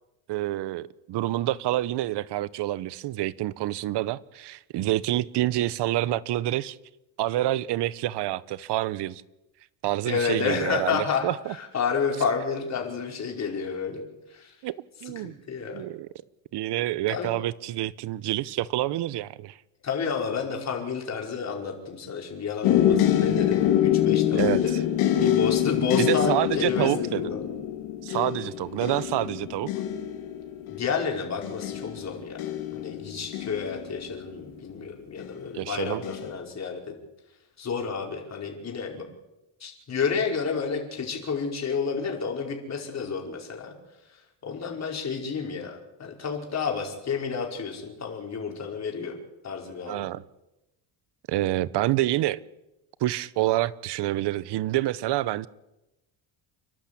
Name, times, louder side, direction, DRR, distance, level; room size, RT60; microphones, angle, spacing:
voice 1, 0.3-6.8 7.2-9.2 9.8-11.5 14.6-14.8 15.0-15.3 15.7-16.1 16.5-19.6 24.3-24.6 26.0-27.2 28.0-29.7 35.5-36.0 49.9-50.2 51.3-52.4 53.0-55.5, right 15 dB, 55° right, 19 dB, 0.9 m, -27 dB
voice 2, 10.1-14.0 14.3-14.6 15.1-15.8 17.1-17.3 19.8-27.6 30.7-36.8 37.6-39.0 39.6-43.7 44.1-49.1 49.4-50.1, left 5 dB, 30° left, 1 dB, 5.2 m, -30 dB
sound 1, 22.6-34.5 35.2-35.6 36.0-36.3, left 11 dB, 85° left, 3.6 m, -26 dB
29.5 x 12.0 x 8.6 m, 0.96 s
cardioid pair, 140°, 49 cm